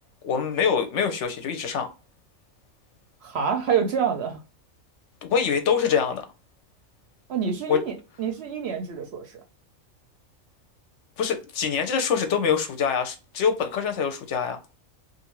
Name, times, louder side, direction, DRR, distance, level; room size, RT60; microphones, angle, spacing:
voice 1, 0.2-1.9 5.2-6.2 7.7-7.8 11.2-14.6, left 6 dB, 65° left, 0.8 m, -24 dB
voice 2, 3.2-4.4 7.3-9.4, right 7 dB, 65° right, 0.7 m, -27 dB
2.5 x 2.4 x 2.9 m
omnidirectional pair, 1.4 m